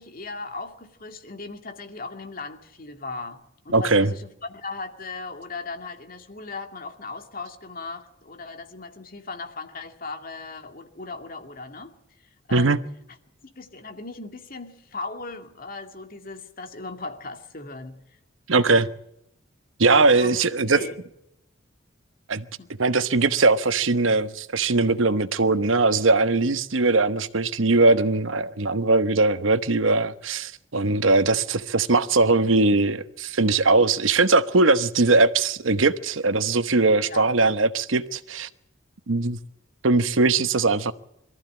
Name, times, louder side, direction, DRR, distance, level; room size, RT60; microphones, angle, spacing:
voice 1, 0.0-11.9 12.5-12.8 13.5-18.0 18.7-18.9 20.1-20.4 20.6-21.0 22.6-22.7 37.0-37.3, left 3 dB, 45° left, 2.2 m, -37 dB
voice 2, 3.7-4.1 12.5-12.8 18.5-18.9 19.8-20.8 22.3-22.5 22.8-38.5 39.1-39.4 39.8-40.9, right 3 dB, 90° right, 1.0 m, -20 dB
22.5 x 14.5 x 8.8 m
head